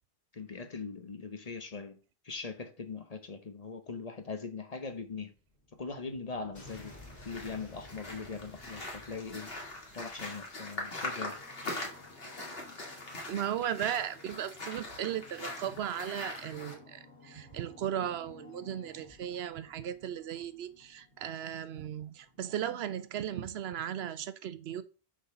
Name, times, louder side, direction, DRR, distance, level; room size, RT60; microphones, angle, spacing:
voice 1, 0.3-2.0 2.2-5.3 5.7-7.0 7.2-9.5 9.9-11.4, left 4 dB, 40° left, 0.9 m, -41 dB
sound 1, 5.1-23.3, left 2 dB, 85° left, 2.4 m, -56 dB
sound 2, 6.6-16.7, left 2 dB, 65° left, 2.0 m, -42 dB
voice 2, 13.3-24.8, right 10 dB, 75° right, 0.9 m, -36 dB
6.3 x 4.0 x 5.8 m
omnidirectional pair, 1.1 m